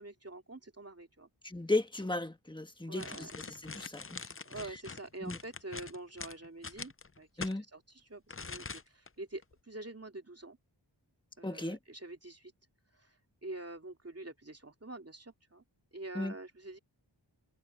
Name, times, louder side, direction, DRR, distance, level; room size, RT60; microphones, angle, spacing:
voice 1, 0.0-1.3 2.9-3.3 4.4-10.6 11.4-12.5 13.0-13.1 13.4-15.6 15.9-16.8, right 2 dB, 30° right, 2.8 m, -46 dB
voice 2, 1.4-3.3 3.6-4.3 5.2-5.4 7.4-7.6 11.4-11.8 16.1-16.3, left 2 dB, 10° left, 1.6 m, -35 dB
sound 1, 3.0-7.6 8.3-9.1 9.4-9.5, left 4 dB, 30° left, 0.6 m, -44 dB
wide cardioid pair, 45°, 45 cm